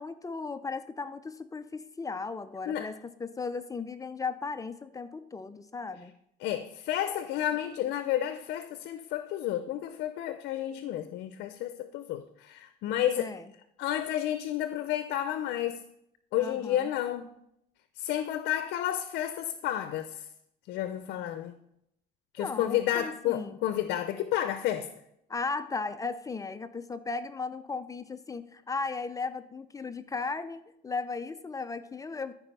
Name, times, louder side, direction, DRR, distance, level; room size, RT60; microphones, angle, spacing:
voice 1, 0.0-6.1 13.2-13.5 16.4-16.9 22.4-23.6 25.3-32.3, left 4 dB, 20° left, 0.5 m, -36 dB
voice 2, 6.4-13.3 13.8-15.8 16.3-17.3 18.0-20.2 20.7-21.5 22.3-24.9, left 12 dB, 80° left, 0.6 m, -31 dB
13.5 x 4.9 x 5.4 m
cardioid pair, 110°, 17 cm